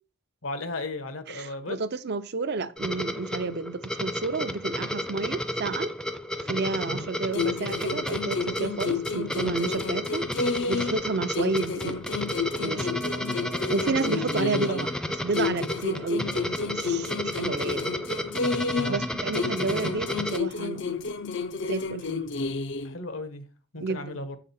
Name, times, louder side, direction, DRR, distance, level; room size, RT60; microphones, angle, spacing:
voice 1, 0.4-1.8 6.8-7.1 14.4-14.8 18.7-19.0 22.4-22.5 22.8-23.5 23.7-24.4, left 2 dB, 80° left, 1.0 m, -36 dB
voice 2, 1.3-5.9 6.4-10.2 10.7-12.0 12.6-12.9 13.7-14.9 15.2-17.9 18.9-20.9 21.7-22.1 23.8-24.2, right 3 dB, 55° right, 0.5 m, -30 dB
sound 1, 2.8-20.4, left 1 dB, 5° left, 0.5 m, -32 dB
sound 2, 7.3-11.0 11.3-15.0 15.3-19.0 19.3-23.0, left 4 dB, 65° left, 0.5 m, -31 dB
7.4 x 5.0 x 4.2 m
head